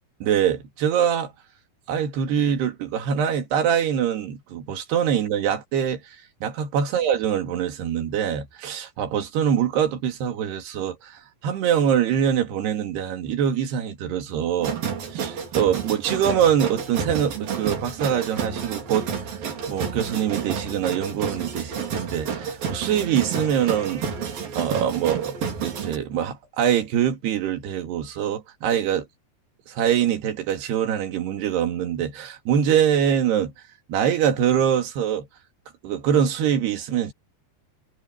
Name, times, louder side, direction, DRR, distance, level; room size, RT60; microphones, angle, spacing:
voice 1, 0.2-1.3 1.9-6.0 6.4-14.8 15.1-19.1 19.7-24.0 24.6-25.3 25.6-29.1 29.7-33.5 33.9-35.3 35.8-37.1, right 9 dB, 75° right, 4.2 m, -24 dB
sound 1, 14.6-26.0, right 6 dB, 60° right, 5.0 m, -30 dB
omnidirectional pair, 4.7 m